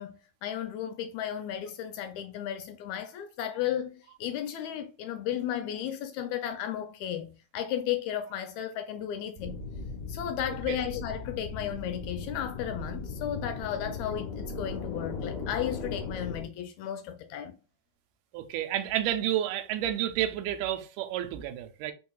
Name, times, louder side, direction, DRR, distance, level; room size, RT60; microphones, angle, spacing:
voice 1, 0.0-9.6 10.1-17.5, left 10 dB, 80° left, 1.7 m, -34 dB
sound 1, 9.4-16.4, left 4 dB, 55° left, 0.9 m, -38 dB
voice 2, 18.3-21.9, right 12 dB, 90° right, 2.1 m, -30 dB
4.5 x 4.1 x 2.3 m
omnidirectional pair, 3.6 m